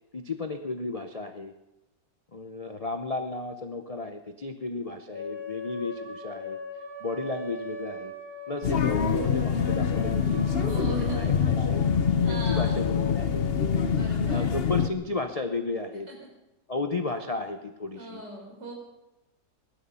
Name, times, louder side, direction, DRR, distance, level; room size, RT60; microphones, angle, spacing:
voice 1, 0.1-1.5 2.3-6.6 7.0-8.1 8.5-11.8 12.3-13.5 14.3-16.1 16.7-18.2, left 3 dB, 65° left, 7 dB, 0.3 m, -34 dB
sound 1, 5.1-14.1, left 4 dB, 25° left, 2.2 m, -39 dB
sound 2, 8.6-14.9, left 6 dB, 45° left, 0.8 m, -25 dB
voice 2, 10.5-11.2 12.2-12.8 13.9-14.5 16.1-16.2 18.0-18.7, right 2 dB, 75° right, 0 dB, 4.6 m, -40 dB
19.0 x 11.5 x 5.6 m, 0.96 s
omnidirectional pair, 1.9 m